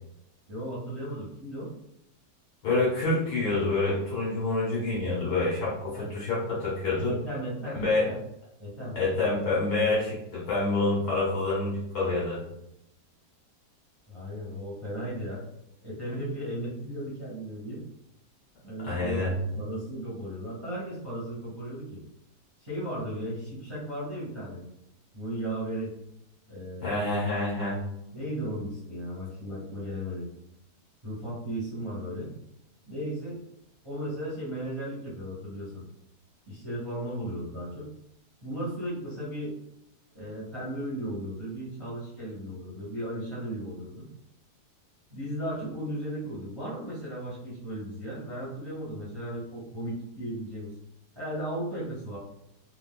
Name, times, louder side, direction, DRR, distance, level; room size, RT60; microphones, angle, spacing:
voice 1, 0.5-1.7 7.0-8.2 8.6-9.0 14.1-15.4 15.8-17.8 18.6-22.0 22.6-24.6 25.1-25.9 26.5-27.0 28.1-30.3 31.0-32.3 32.9-33.4 33.8-35.8 36.5-37.9 38.4-39.6 40.1-44.1 45.1-50.7 51.1-52.2, right 1 dB, 15° right, -8 dB, 1.0 m, -35 dB
voice 2, 2.6-7.1 7.6-8.1 9.0-12.4 18.8-19.3 26.8-27.8, left 2 dB, 70° left, -6 dB, 1.9 m, -27 dB
3.7 x 2.4 x 2.3 m, 0.79 s
omnidirectional pair, 1.7 m